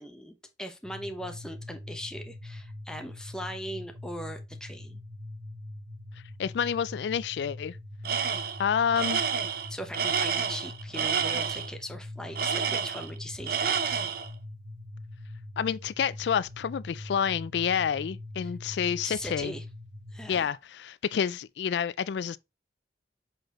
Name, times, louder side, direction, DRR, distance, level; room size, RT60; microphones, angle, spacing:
voice 1, 0.0-5.0 9.7-14.0 19.0-19.6 20.1-20.5, equal, 5° left, 0.9 m, -40 dB
sound 1, 0.8-20.4, left 1 dB, 35° right, 1.0 m, -43 dB
voice 2, 6.4-7.8 8.6-9.4 15.6-19.5 20.3-22.4, left 7 dB, 75° left, 0.3 m, -29 dB
Tools, 8.1-8.6 9.0-11.7 12.4-13.2 13.5-14.3, right 7 dB, 55° right, 0.8 m, -29 dB
7.7 x 4.4 x 3.0 m
head